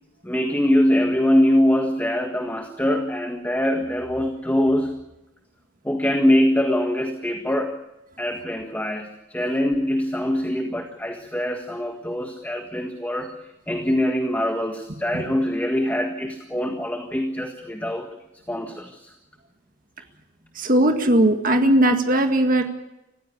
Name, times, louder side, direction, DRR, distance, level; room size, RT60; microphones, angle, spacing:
voice 1, 0.2-5.0 5.8-7.8 8.2-13.3 13.7-18.1 18.5-19.1, left 1 dB, 10° left, 3 dB, 1.6 m, -23 dB
voice 2, 20.6-22.6, right 1 dB, 45° right, 5 dB, 1.9 m, -18 dB
25.0 x 15.5 x 8.5 m, 0.94 s
head